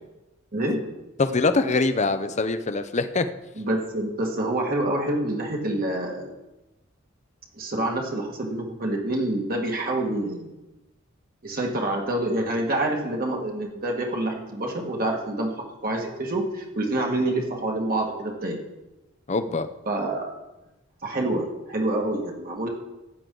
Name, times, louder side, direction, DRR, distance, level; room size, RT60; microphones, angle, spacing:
voice 1, 1.2-3.3 19.3-19.7, left 3 dB, 35° left, 10 dB, 0.7 m, -23 dB
voice 2, 3.6-6.3 7.5-10.5 11.4-15.5 15.8-18.6 19.9-20.3 21.0-22.7, right 1 dB, 45° right, 0 dB, 1.9 m, -27 dB
15.0 x 9.7 x 3.9 m, 1.0 s
head